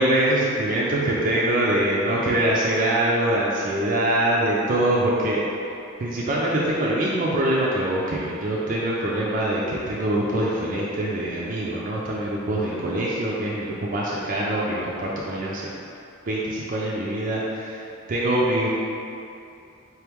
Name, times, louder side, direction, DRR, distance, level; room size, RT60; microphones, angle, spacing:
voice 1, 0.0-5.4 6.0-15.7 16.3-18.7, right 1 dB, 40° right, -5 dB, 0.4 m, -24 dB
3.8 x 2.9 x 3.4 m, 2.6 s
head